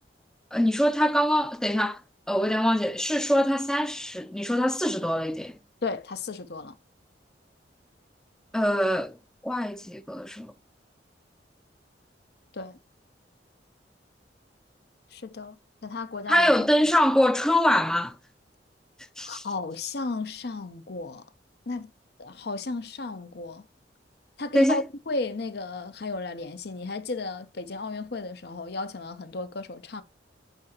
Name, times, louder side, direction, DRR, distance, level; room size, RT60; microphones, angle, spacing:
voice 1, 0.5-2.0 2.3-5.6 8.5-9.2 9.4-10.5 16.3-18.2 19.2-19.4 24.5-24.8, equal, 5° left, 0.4 m, -24 dB
voice 2, 5.8-6.8 12.5-12.8 15.1-16.7 19.2-21.3 21.7-21.9 22.2-23.6 24.4-30.0, left 3 dB, 60° left, 0.7 m, -34 dB
8.1 x 4.8 x 2.9 m
head